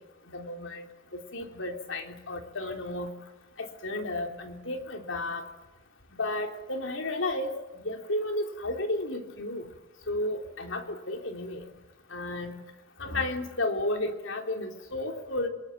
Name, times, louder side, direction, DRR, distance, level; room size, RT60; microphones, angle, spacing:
voice 1, 0.3-0.9 1.1-3.1 3.6-5.4 6.1-7.5 7.7-9.7 10.1-11.7 12.1-12.6 13.0-15.5, left 2 dB, 80° left, 4 dB, 3.5 m, -33 dB
27.5 x 21.5 x 9.1 m, 1.0 s
head